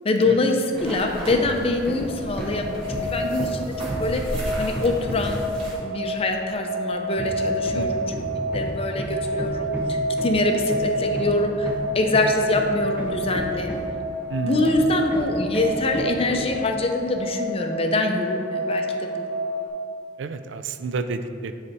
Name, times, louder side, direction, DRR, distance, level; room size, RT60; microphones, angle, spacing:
voice 1, 0.0-4.2 4.6-5.5 5.8-8.1 8.5-13.8 14.4-19.2, left 2 dB, 30° left, 4 dB, 0.5 m, -24 dB
sound 1, 0.7-5.8, equal, 30° right, 1.6 m, -36 dB
Hammer, 1.3-1.6 1.8-5.4 7.2-14.1 14.6-16.6, right 1 dB, 10° right, 0.7 m, -32 dB
sound 2, 1.6-19.7, right 1 dB, 10° left, 1.3 m, -29 dB
voice 2, 7.7-8.2 14.3-14.6 20.2-21.5, right 3 dB, 75° right, 9 dB, 0.4 m, -30 dB
9.7 x 3.3 x 4.1 m, 2.3 s
head